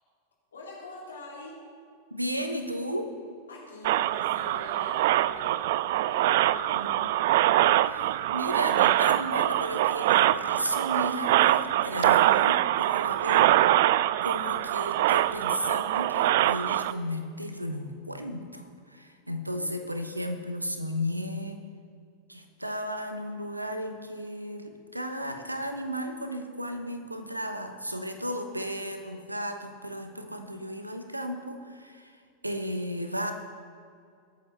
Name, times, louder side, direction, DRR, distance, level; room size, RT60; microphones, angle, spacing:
voice 1, 0.5-1.6 3.5-7.3 12.9-13.8 19.5-19.8, left 2 dB, 70° left, -3 dB, 3.5 m, -45 dB
voice 2, 2.1-3.1 6.7-6.9 7.9-13.4 14.2-21.6 22.3-33.3, equal, 85° right, 6 dB, 1.1 m, -34 dB
sound 1, 3.8-16.9, right 14 dB, 55° right, 0.3 m, -24 dB
21.5 x 8.5 x 4.1 m, 2.3 s
figure-of-eight pair, 90°, 0 cm